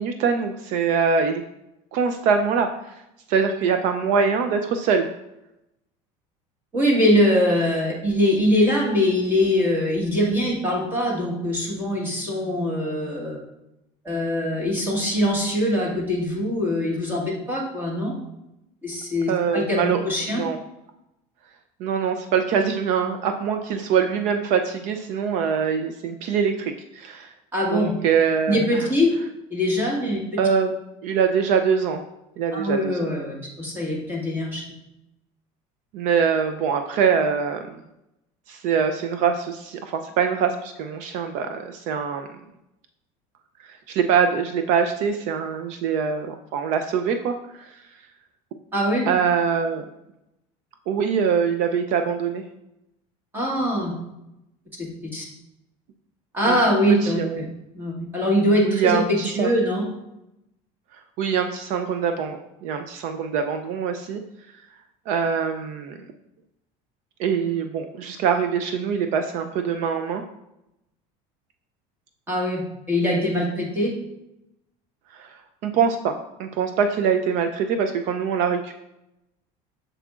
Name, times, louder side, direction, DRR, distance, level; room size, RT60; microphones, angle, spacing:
voice 1, 0.0-1.4 1.9-2.9 3.3-5.1 19.3-20.0 20.3-20.6 21.8-27.3 27.7-28.8 30.4-30.7 31.0-32.0 32.4-33.0 35.9-37.6 38.5-42.3 43.7-47.4 49.1-49.8 50.9-52.4 56.5-56.6 57.0-57.5 58.6-59.5 61.2-64.2 65.1-66.0 67.2-70.2 75.1-76.1 76.4-78.7, right 6 dB, 55° right, 7 dB, 0.5 m, -23 dB
voice 2, 6.7-13.4 14.0-18.1 18.8-20.4 27.5-27.9 28.5-29.1 29.5-30.2 32.5-34.6 48.7-49.1 53.3-53.9 54.8-55.2 56.3-57.2 57.7-59.8 72.3-72.6 72.9-73.9, left 1 dB, 15° right, -3 dB, 1.5 m, -22 dB
7.3 x 6.8 x 2.4 m, 0.87 s
cardioid pair, 170°, 15 cm